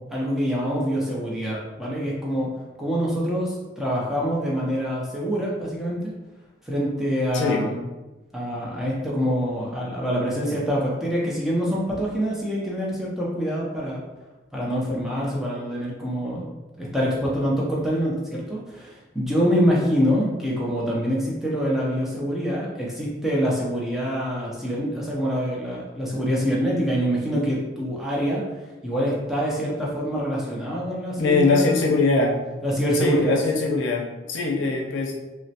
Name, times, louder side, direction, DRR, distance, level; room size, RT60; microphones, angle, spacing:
voice 1, 0.1-2.5 2.8-6.1 6.6-7.8 8.3-14.0 14.5-16.5 16.8-28.4 28.8-31.8 32.6-33.4, equal, ahead, -5 dB, 0.5 m, -25 dB
voice 2, 31.2-32.3 32.9-35.2, left 3 dB, 80° left, 0 dB, 0.5 m, -22 dB
3.0 x 2.0 x 2.7 m, 1.1 s
head